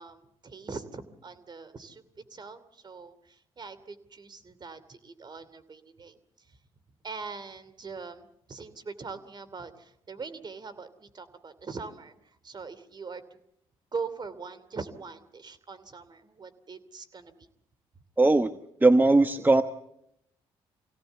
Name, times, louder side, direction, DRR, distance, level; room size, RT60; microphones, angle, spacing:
voice 1, 0.0-6.6 7.0-13.4 13.9-17.5, right 4 dB, 40° right, 12 dB, 2.8 m, -42 dB
voice 2, 18.2-18.5 18.8-19.6, right 2 dB, 15° right, 9 dB, 1.1 m, -19 dB
25.5 x 17.0 x 8.2 m, 0.79 s
supercardioid pair, 65°, 11 cm